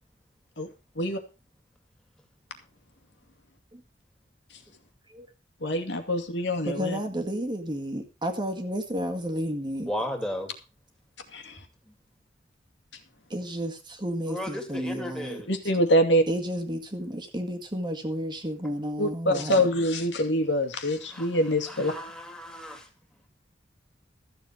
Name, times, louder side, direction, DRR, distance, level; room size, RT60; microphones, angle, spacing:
voice 1, 5.6-7.0 11.3-11.5 15.5-16.2 19.0-21.9, equal, 70° left, 2.2 m, -25 dB
voice 2, 6.7-9.9 13.3-15.4 16.3-19.7, equal, 25° right, 1.8 m, -32 dB
voice 3, 9.9-10.5 14.3-15.5 21.1-21.3 21.7-22.8, equal, 5° left, 2.6 m, -34 dB
14.0 x 7.4 x 6.1 m
head